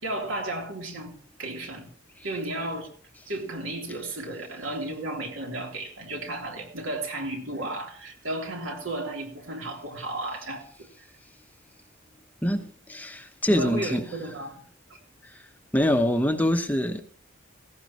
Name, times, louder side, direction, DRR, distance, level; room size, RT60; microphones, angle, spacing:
voice 1, 0.0-1.9 2.2-2.9 3.3-10.9 13.5-14.6 14.9-15.0, right 1 dB, 70° right, 3.5 m, -33 dB
voice 2, 12.4-14.0 15.2-15.4 15.7-17.0, equal, 10° left, 0.9 m, -25 dB
17.5 x 16.0 x 3.1 m
head